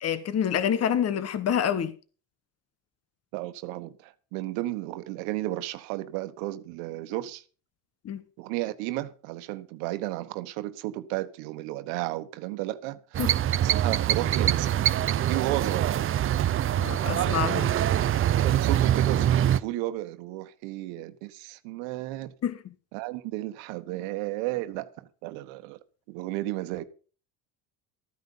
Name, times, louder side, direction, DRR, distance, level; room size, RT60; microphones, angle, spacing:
voice 1, 0.0-1.9 8.0-8.2 13.2-13.3 16.8-17.7 22.4-22.6, left 9 dB, 40° left, 1.2 m, -27 dB
voice 2, 3.3-7.4 8.4-13.2 13.6-14.8 15.3-16.0 18.4-22.3 22.9-25.8 26.1-26.8, right 16 dB, 90° right, 1.3 m, -33 dB
sound 1, 13.1-19.6, right 11 dB, 35° right, 0.5 m, -24 dB
14.0 x 9.5 x 5.5 m
cardioid pair, 110°, 39 cm